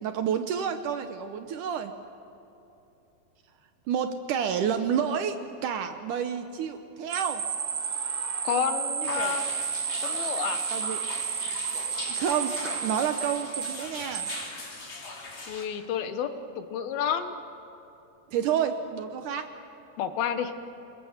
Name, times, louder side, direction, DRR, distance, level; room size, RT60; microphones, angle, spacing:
voice 1, 0.0-1.9 3.9-5.4 5.6-7.4 9.0-9.4 10.7-11.0 12.1-12.5 12.8-14.3 18.3-19.5, right 8 dB, 70° right, 8 dB, 2.1 m, -29 dB
sound 1, 6.7-9.6, right 1 dB, 50° right, 7.0 m, -48 dB
sound 2, 7.1-14.5, right 7 dB, 85° right, 1.1 m, -32 dB
voice 2, 8.4-9.4 10.0-10.6 15.5-16.3 16.6-17.3 20.0-20.5, left 8 dB, 80° left, 9 dB, 3.0 m, -30 dB
sound 3, 9.0-15.6, left 3 dB, 35° left, 3.5 m, -39 dB
28.0 x 21.5 x 7.3 m, 2.9 s
omnidirectional pair, 4.3 m